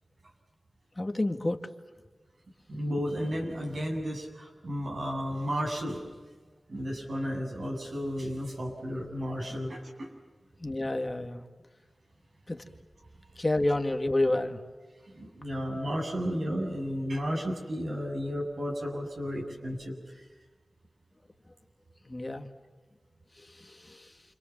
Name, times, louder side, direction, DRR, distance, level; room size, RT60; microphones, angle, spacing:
voice 1, 1.0-1.7 9.5-9.6 10.6-11.5 12.5-12.6 13.4-14.6 22.1-22.5 23.4-24.2, left 2 dB, 30° left, 6 dB, 2.0 m, -30 dB
voice 2, 2.7-6.0 6.7-10.1 15.1-20.2, equal, 75° right, 0 dB, 7.9 m, -33 dB
30.0 x 26.5 x 7.4 m, 1.4 s
wide cardioid pair, 70°, 0 cm